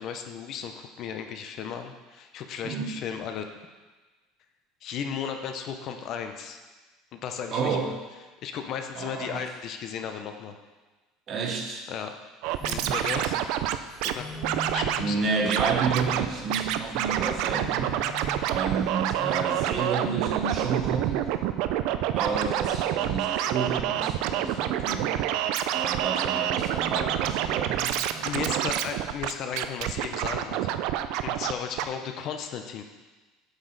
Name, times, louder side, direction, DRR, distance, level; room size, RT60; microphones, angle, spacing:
voice 1, 0.0-3.5 4.8-6.6 7.1-7.8 8.4-10.6 11.9-12.2 12.6-13.4 14.0-14.3 14.7-15.5 18.7-18.8 28.2-30.8 31.2-32.8, left 7 dB, 40° left, 6 dB, 0.5 m, -35 dB
voice 2, 7.5-7.9 8.9-9.4 11.3-11.8 12.8-13.3 15.0-18.0 18.5-21.3 22.1-25.2 25.7-28.8, right 5 dB, 35° right, 3 dB, 0.9 m, -30 dB
sound 1, 12.4-20.1, left 1 dB, 15° left, 1.2 m, -42 dB
Scratching (performance technique), 12.4-14.1 14.4-15.0 15.5-16.3 16.5-31.5 31.8-31.9, right 12 dB, 60° right, 0.4 m, -27 dB
sound 2, 19.9-24.9, left 1 dB, 5° right, 1.5 m, -45 dB
8.1 x 6.2 x 3.9 m, 1.2 s
cardioid pair, 170°, 0 cm